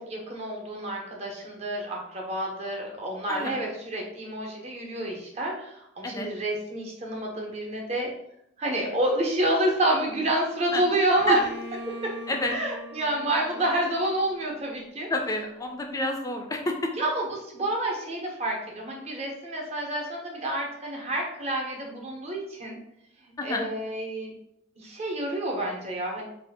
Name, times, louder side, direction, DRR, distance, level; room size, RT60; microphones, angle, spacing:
voice 1, 0.1-8.1 8.6-11.4 11.9-12.2 12.5-15.1 17.0-22.8 23.4-24.3 24.8-26.2, right 1 dB, 35° right, -1 dB, 0.7 m, -28 dB
Bowed string instrument, 11.2-14.9, equal, 65° right, 0.7 m, -42 dB
voice 2, 15.1-16.9 23.4-23.7, left 2 dB, 20° left, 3 dB, 0.3 m, -29 dB
2.6 x 2.3 x 3.4 m, 0.77 s
head